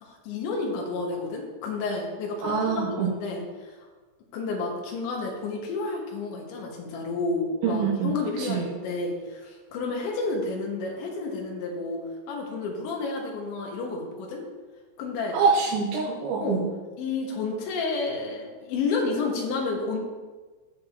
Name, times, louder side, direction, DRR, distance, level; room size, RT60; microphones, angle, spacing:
voice 1, 0.0-3.7 4.3-14.4 15.0-15.4 16.4-16.7 17.0-20.0, left 3 dB, 90° left, -1 dB, 3.7 m, -30 dB
voice 2, 2.4-3.1 7.6-8.7 15.3-16.6, right 5 dB, 90° right, -4 dB, 3.4 m, -25 dB
14.5 x 7.1 x 2.8 m, 1.3 s
omnidirectional pair, 5.1 m